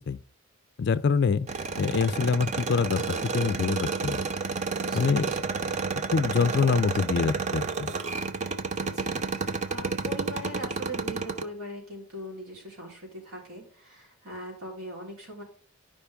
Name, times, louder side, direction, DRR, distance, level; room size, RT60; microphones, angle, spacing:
voice 1, 0.8-1.5 1.8-4.2 4.9-5.3 6.1-7.9, left 5 dB, 50° left, 0.4 m, -25 dB
sound 1, 1.5-11.4, right 4 dB, 30° right, 0.5 m, -31 dB
voice 2, 4.8-5.5 8.8-15.4, equal, 90° right, 3.5 m, -41 dB
11.5 x 5.1 x 3.5 m
head